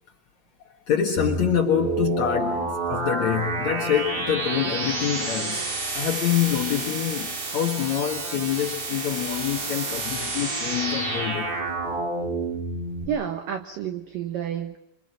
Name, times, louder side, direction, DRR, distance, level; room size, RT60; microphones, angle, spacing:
voice 1, 0.6-5.7 5.9-11.5, left 9 dB, 80° left, 1.6 m, -26 dB
sound 1, 1.2-13.0, right 3 dB, 60° right, 8.0 m, -29 dB
voice 2, 13.1-14.8, right 8 dB, 90° right, 1.9 m, -30 dB
27.5 x 25.5 x 7.6 m
omnidirectional pair, 5.8 m